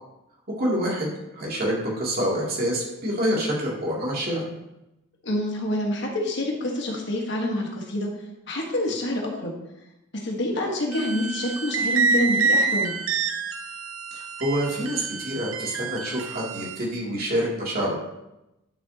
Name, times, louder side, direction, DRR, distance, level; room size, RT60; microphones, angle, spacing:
voice 1, 0.6-1.1 1.3-4.4 14.1-17.9, equal, 50° right, -4 dB, 2.8 m, -27 dB
voice 2, 5.2-8.1 8.5-9.5 10.1-12.9, left 1 dB, 60° left, 0 dB, 1.5 m, -27 dB
sound 1, 10.9-16.8, right 4 dB, 85° right, 0.7 m, -27 dB
10.5 x 7.0 x 2.9 m, 0.91 s
head